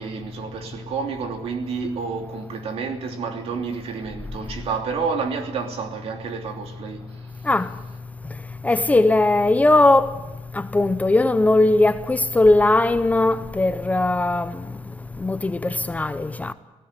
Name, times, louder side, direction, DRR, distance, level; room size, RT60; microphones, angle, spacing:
voice 1, 0.0-7.1, right 5 dB, 60° right, 2.9 m, -29 dB
voice 2, 8.6-10.1 10.5-14.7 15.2-16.5, left 2 dB, 15° left, 0.7 m, -19 dB
18.5 x 16.0 x 10.0 m
cardioid pair, 150°, 11 cm